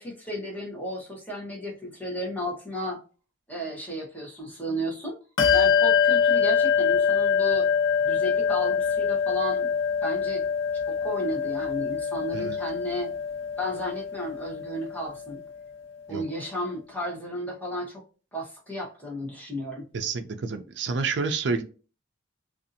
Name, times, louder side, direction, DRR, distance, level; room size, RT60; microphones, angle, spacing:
voice 1, 0.0-3.0 3.5-5.2 5.5-7.7 8.0-9.7 10.0-10.4 10.9-13.1 13.6-15.4 16.1-18.0 18.3-19.9, equal, 10° left, -3 dB, 0.9 m, -33 dB
Bell, 5.4-15.4, left 6 dB, 75° left, 0.6 m, -24 dB
voice 2, 19.9-21.6, right 4 dB, 60° right, 7 dB, 0.4 m, -29 dB
2.6 x 2.4 x 2.6 m, 0.36 s
head